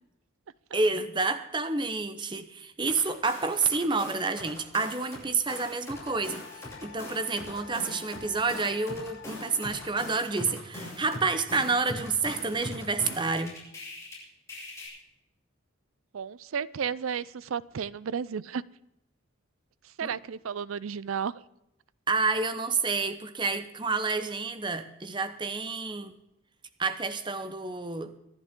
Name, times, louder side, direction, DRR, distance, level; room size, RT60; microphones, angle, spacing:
voice 1, 0.7-13.6 20.0-20.1 22.1-26.2 26.8-28.1, right 4 dB, 25° right, 11 dB, 0.8 m, -29 dB
sound 1, 2.9-5.2 5.5-14.1 14.5-14.9, left 1 dB, 15° left, 6.8 m, -41 dB
Wind instrument woodwind instrument, 5.9-10.3, left 9 dB, 60° left, 1.2 m, -49 dB
voice 2, 16.1-18.6 19.8-21.4, right 7 dB, 85° right, 20 dB, 0.5 m, -33 dB
25.5 x 11.0 x 3.7 m, 0.84 s
head